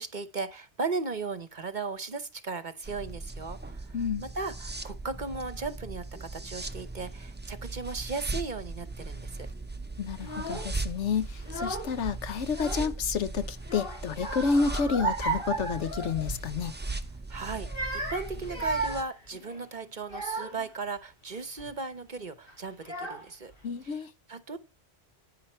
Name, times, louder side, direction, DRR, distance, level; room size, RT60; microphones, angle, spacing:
voice 1, 0.0-9.3 17.3-17.7 18.1-23.5 23.8-24.6, right 4 dB, 45° right, 0.9 m, -36 dB
sound 1, 2.8-19.0, right 3 dB, 15° right, 0.5 m, -39 dB
voice 2, 3.9-4.3 10.0-16.7 23.6-24.1, left 5 dB, 70° left, 1.1 m, -30 dB
Child speech kid speaking / Crying sobbing, 10.2-10.7 11.4-12.0 12.3-13.2 13.6-16.5 16.8-17.1 17.6-20.7 21.3-21.7 22.5-22.6 22.8-23.5, right 2 dB, 50° left, 3.5 m, -35 dB
10.0 x 9.5 x 4.4 m
omnidirectional pair, 1.2 m